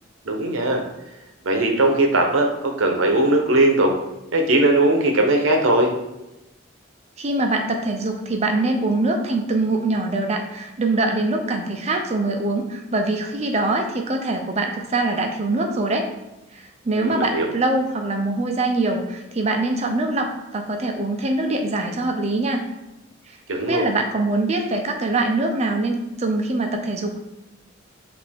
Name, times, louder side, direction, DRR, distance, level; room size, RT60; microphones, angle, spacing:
voice 1, 0.2-0.8 1.4-3.9 4.3-5.9 16.9-17.5 23.5-23.8, right 2 dB, 70° right, 2 dB, 0.7 m, -19 dB
voice 2, 7.2-16.1 16.5-22.6 23.6-27.2, right 2 dB, 30° right, 3 dB, 0.5 m, -23 dB
5.2 x 2.6 x 3.5 m, 0.96 s
head